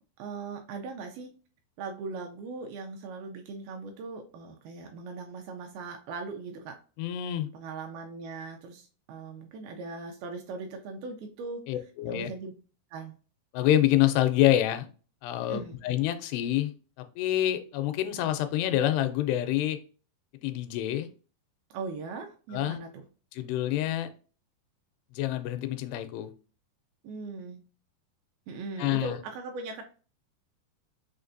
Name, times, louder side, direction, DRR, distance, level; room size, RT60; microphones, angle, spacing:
voice 1, 0.2-1.3 1.8-6.8 7.5-11.7 12.1-12.5 12.9-13.1 15.5-15.8 21.7-23.0 27.0-27.6 28.5-29.8, right 4 dB, 80° right, 3 dB, 2.3 m, -39 dB
voice 2, 7.0-7.5 11.7-12.3 13.5-14.9 15.2-16.7 17.2-19.8 20.4-21.1 22.5-22.8 23.3-24.1 25.1-26.3 28.8-29.2, left 13 dB, 85° left, 9 dB, 2.6 m, -27 dB
6.4 x 2.5 x 2.5 m, 0.37 s
omnidirectional pair, 4.7 m